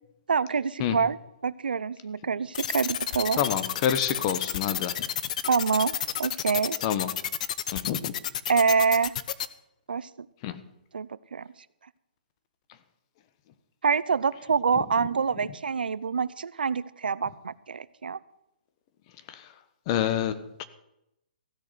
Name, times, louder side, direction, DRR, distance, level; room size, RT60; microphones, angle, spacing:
voice 1, 0.3-1.2 1.4-3.5 5.5-6.8 8.5-9.1 9.9-10.3 10.9-11.5 13.8-18.2, right 5 dB, 85° right, 18 dB, 0.6 m, -26 dB
sound 1, 2.5-9.5, left 10 dB, 50° left, 0.8 m, -30 dB
voice 2, 3.4-4.9 6.8-7.1 7.7-8.1 10.4-10.6 19.3-19.5 19.9-20.6, left 9 dB, 35° left, 11 dB, 1.2 m, -28 dB
15.5 x 6.5 x 9.5 m, 0.84 s
hypercardioid pair, 145°, 5 cm